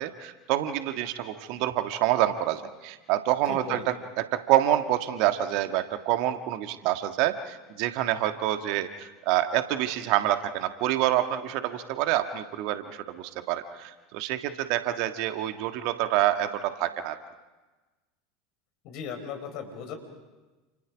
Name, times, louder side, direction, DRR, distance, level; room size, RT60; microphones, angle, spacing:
voice 1, 0.0-17.2, right 13 dB, 55° right, 8 dB, 1.6 m, -27 dB
voice 2, 3.5-3.8 18.8-20.0, left 6 dB, 50° left, 7 dB, 4.9 m, -37 dB
30.0 x 28.5 x 5.2 m, 1.2 s
figure-of-eight pair, 75°, 0 cm